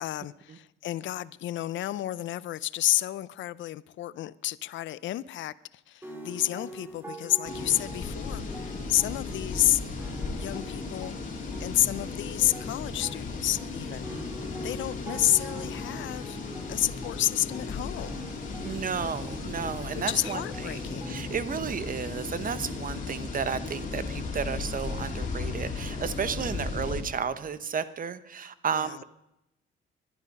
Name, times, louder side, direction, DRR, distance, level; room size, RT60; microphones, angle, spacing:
voice 1, 0.0-9.8 10.4-11.1 11.6-14.1 14.6-16.4 16.7-18.2 19.9-21.2 28.7-29.0, left 14 dB, 70° left, 0.5 m, -30 dB
sound 1, 6.0-22.0, right 1 dB, 10° right, 3.6 m, -45 dB
sound 2, 7.4-27.0, left 4 dB, 40° left, 3.3 m, -36 dB
voice 2, 18.6-29.0, right 6 dB, 45° right, 1.0 m, -33 dB
20.0 x 12.0 x 5.4 m
cardioid pair, 90°, 20 cm